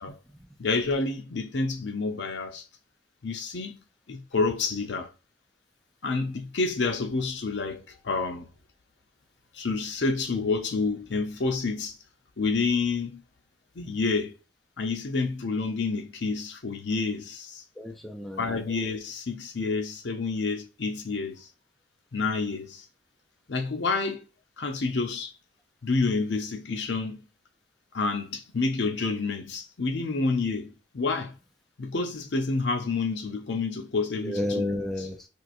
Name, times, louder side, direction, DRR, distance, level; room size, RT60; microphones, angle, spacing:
voice 1, 0.1-0.5 17.8-18.7 34.2-35.3, left 1 dB, ahead, 0.3 m, -32 dB
voice 2, 0.6-2.6 3.2-3.7 4.1-5.1 6.0-8.5 9.5-11.9 12.4-13.2 13.8-14.3 14.8-17.6 18.4-21.5 22.1-22.8 23.5-24.2 24.6-25.3 25.8-27.2 27.9-31.4 31.8-34.8, left 4 dB, 75° left, 0.6 m, -29 dB
4.6 x 2.5 x 2.6 m
head